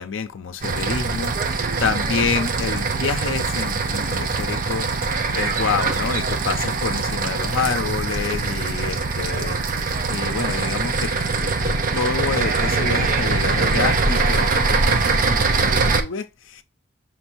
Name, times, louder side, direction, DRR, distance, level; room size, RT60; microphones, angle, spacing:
voice 1, 0.0-4.9 5.3-16.6, left 5 dB, 75° left, 0.5 m, -28 dB
sound 1, 0.6-16.0, right 4 dB, 45° right, 0.6 m, -22 dB
5.9 x 2.6 x 2.8 m
head